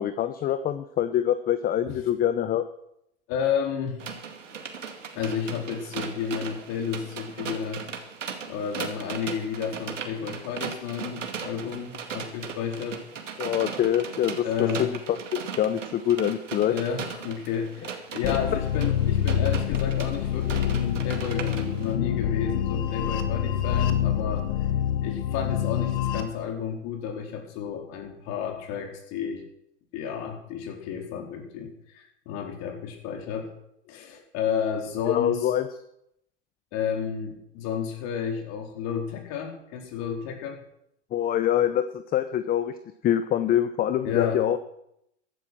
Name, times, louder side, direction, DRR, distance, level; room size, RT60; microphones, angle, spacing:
voice 1, 0.0-2.6 13.4-14.5 14.8-16.7 35.1-35.7 41.1-41.8 42.1-42.7 43.0-44.6, left 10 dB, 25° left, 11 dB, 0.8 m, -25 dB
voice 2, 3.3-4.0 5.1-7.9 8.5-13.0 14.4-14.9 16.5-24.5 25.0-29.4 29.9-33.5 33.9-35.5 36.7-40.6 44.0-44.5, left 7 dB, 45° left, 3 dB, 4.2 m, -31 dB
sound 1, 4.0-21.9, right 6 dB, 85° right, 2.3 m, -38 dB
sound 2, 18.2-26.2, left 9 dB, 65° left, 1.8 m, -26 dB
15.0 x 12.0 x 6.3 m, 0.78 s
hypercardioid pair, 110°, 36 cm